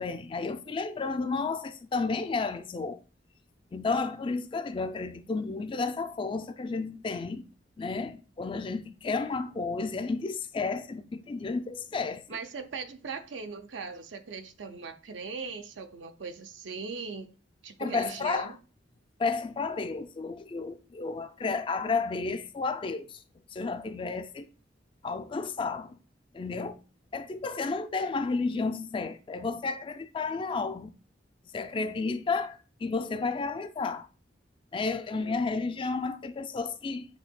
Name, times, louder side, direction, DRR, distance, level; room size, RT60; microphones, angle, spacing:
voice 1, 0.0-3.0 3.7-7.5 7.8-12.2 17.8-18.5 19.2-23.2 23.5-24.5 25.0-26.0 26.3-26.8 27.1-30.9 31.5-34.1 34.7-37.1, left 4 dB, 25° left, 0.3 m, -32 dB
voice 2, 12.3-17.3 17.6-18.6 35.1-35.4, right 4 dB, 75° right, 0.6 m, -39 dB
8.1 x 2.7 x 2.2 m
head